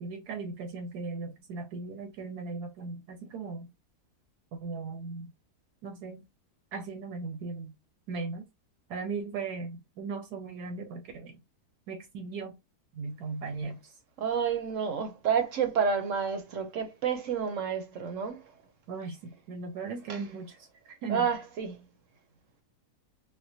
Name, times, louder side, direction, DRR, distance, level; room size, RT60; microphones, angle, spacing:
voice 1, 0.0-3.7 4.5-5.3 5.8-6.2 6.7-7.7 8.1-8.5 8.9-11.4 11.9-12.6 12.9-14.0 18.9-21.3, right 4 dB, 80° right, 1.3 m, -38 dB
voice 2, 14.2-18.4 20.1-20.2 21.1-21.8, right 7 dB, 60° right, 1.0 m, -29 dB
4.3 x 2.2 x 2.7 m
omnidirectional pair, 1.7 m